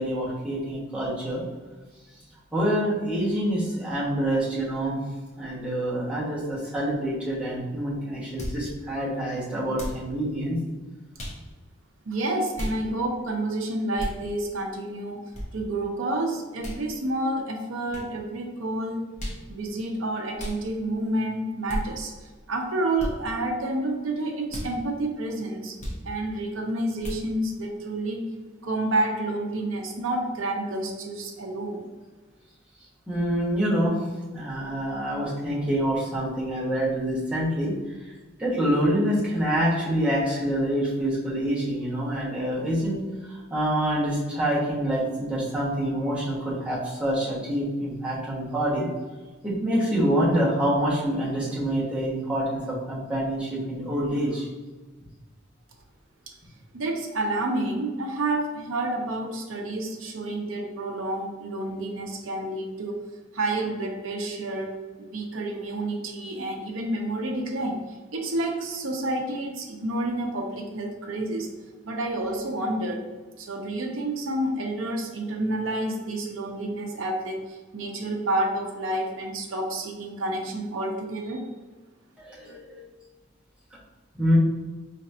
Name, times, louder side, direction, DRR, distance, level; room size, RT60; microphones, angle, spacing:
voice 1, 0.0-1.4 2.5-5.0 5.4-10.6 33.1-34.0 34.3-37.7 38.0-38.1 38.4-48.9 49.4-54.5 82.2-82.8 84.2-84.4, equal, 5° right, -8 dB, 1.2 m, -26 dB
sound 1, 8.4-8.6 9.7-10.0 11.2-11.4 12.5-12.8 14.0-14.2 15.3-15.5 16.6-16.8 17.9-18.1 19.2-19.4 20.4-20.6 21.7-21.8 23.0-23.1 24.5-24.7 25.8-26.0 27.0-27.2, equal, 35° left, 0.8 m, -33 dB
voice 2, 12.1-15.2 15.5-19.1 19.5-22.1 22.5-25.7 26.0-28.2 28.6-31.8 56.3-56.4 56.7-63.0 63.3-67.8 68.1-71.5 71.8-73.0 73.4-81.4, right 1 dB, 85° right, 1 dB, 0.7 m, -29 dB
4.1 x 3.3 x 2.7 m, 1.3 s
head